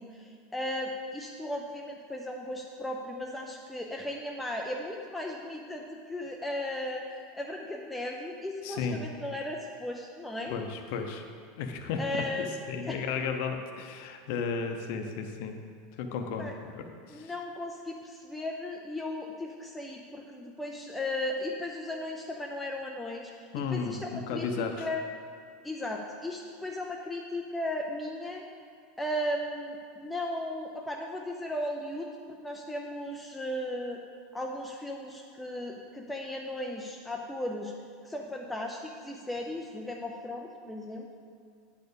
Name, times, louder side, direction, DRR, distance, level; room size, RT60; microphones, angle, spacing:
voice 1, 0.0-10.6 12.0-12.5 12.8-13.0 16.4-16.5 17.1-25.0 25.6-28.4 29.0-34.0 34.3-37.7 38.0-41.2, left 1 dB, 5° left, 0 dB, 0.3 m, -36 dB
voice 2, 8.6-9.0 10.5-11.3 11.6-15.6 16.0-17.3 23.5-24.9, left 5 dB, 50° left, 4 dB, 0.7 m, -34 dB
9.5 x 4.3 x 6.8 m, 2.2 s
supercardioid pair, 180°, 0 cm